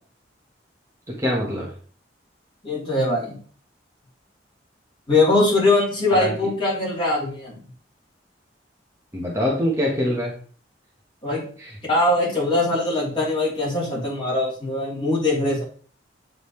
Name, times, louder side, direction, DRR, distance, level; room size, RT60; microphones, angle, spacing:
voice 1, 1.2-1.7 6.1-6.3 9.1-10.3 11.6-11.7, equal, 15° right, -4 dB, 1.2 m, -24 dB
voice 2, 2.6-3.4 5.1-7.6 11.2-11.4 11.9-15.6, left 2 dB, 30° left, -7 dB, 3.3 m, -21 dB
8.5 x 3.9 x 3.2 m, 0.44 s
head